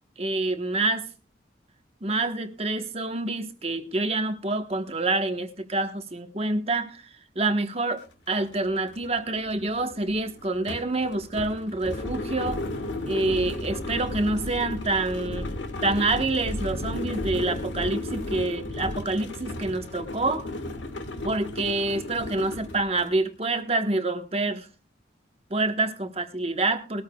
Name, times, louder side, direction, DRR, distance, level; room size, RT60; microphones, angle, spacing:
voice 1, 0.2-1.1 2.0-7.0 7.3-12.6 13.0-15.5 15.8-20.5 21.2-24.7 25.5-27.0, right 2 dB, 35° right, 1.2 m, -27 dB
sound 1, 8.0-8.1 8.4-23.2, left 1 dB, 85° left, 1.7 m, -34 dB
20.0 x 13.5 x 2.3 m
head